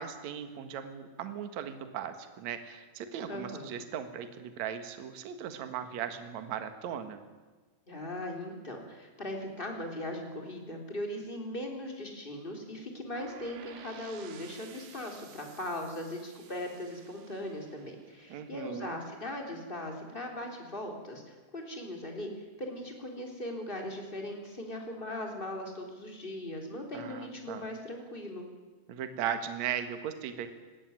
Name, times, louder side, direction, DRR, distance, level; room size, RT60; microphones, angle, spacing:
voice 1, 0.0-7.2 18.3-19.0 26.9-27.6 28.9-30.5, right 8 dB, 60° right, 9 dB, 2.5 m, -38 dB
voice 2, 3.3-3.7 7.9-28.5, left 1 dB, 15° left, 2 dB, 3.2 m, -39 dB
sound 1, 13.1-19.0, right 8 dB, 75° right, 3.1 m, -53 dB
19.5 x 17.0 x 9.4 m, 1.3 s
omnidirectional pair, 4.1 m